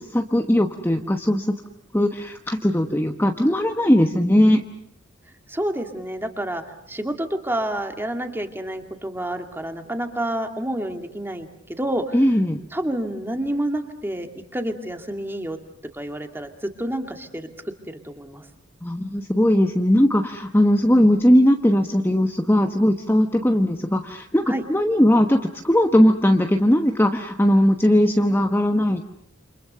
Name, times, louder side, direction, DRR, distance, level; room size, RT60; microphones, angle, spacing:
voice 1, 0.0-1.5 1.9-4.6 12.1-12.6 18.8-29.0, equal, 10° left, 4 dB, 1.1 m, -19 dB
voice 2, 5.5-6.6 6.9-12.1 12.7-14.3 14.5-15.6 15.9-17.5 17.9-18.4 24.5-24.6, right 1 dB, 10° right, 5 dB, 2.4 m, -28 dB
29.0 x 26.5 x 6.8 m, 0.69 s
head